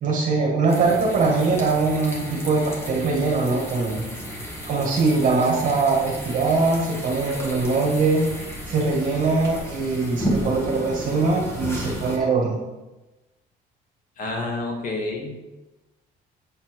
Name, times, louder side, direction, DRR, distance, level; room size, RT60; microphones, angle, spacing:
voice 1, 0.0-4.0 4.7-8.3 8.7-12.6, right 3 dB, 50° right, -2 dB, 1.7 m, -22 dB
sound 1, 0.7-12.2, equal, 15° left, 1.7 m, -33 dB
voice 2, 14.2-15.4, left 2 dB, 50° left, 0 dB, 2.0 m, -29 dB
8.2 x 4.5 x 4.7 m, 1.1 s
cardioid pair, 110°, 17 cm